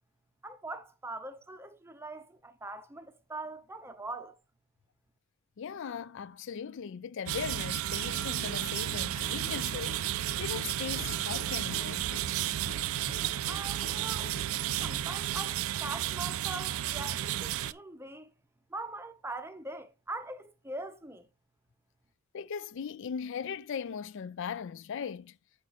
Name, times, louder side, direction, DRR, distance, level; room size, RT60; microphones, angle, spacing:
voice 1, 0.4-4.4 13.5-14.3 14.8-18.3 18.7-21.3, right 2 dB, 10° right, 0.6 m, -42 dB
voice 2, 5.6-12.1 22.3-25.4, left 7 dB, 55° left, 0.4 m, -39 dB
sound 1, 7.3-17.7, right 13 dB, 70° right, 0.3 m, -33 dB
sound 2, 8.0-16.8, left 2 dB, 85° left, 1.3 m, -49 dB
6.3 x 6.2 x 4.0 m
head